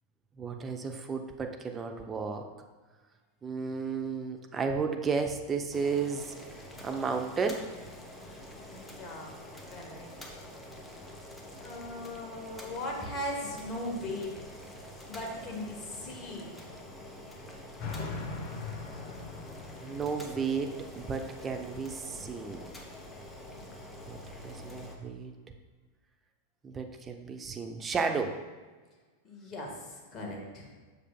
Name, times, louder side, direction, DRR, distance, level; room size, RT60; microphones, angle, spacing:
voice 1, 0.4-2.5 3.4-6.3 6.8-7.7 19.8-22.7 24.1-25.3 26.6-28.4, right 5 dB, 20° right, 5 dB, 0.6 m, -33 dB
Boiling, 5.7-25.0, left 1 dB, 10° left, 0.8 m, -47 dB
voice 2, 8.7-9.4 9.7-10.4 11.6-14.4 15.1-16.7 23.6-24.2 29.2-30.7, left 1 dB, 25° left, -1 dB, 1.4 m, -39 dB
sound 1, 17.8-23.6, left 4 dB, 40° left, 0.8 m, -43 dB
7.4 x 6.6 x 2.2 m, 1.4 s
figure-of-eight pair, 90°, 0 cm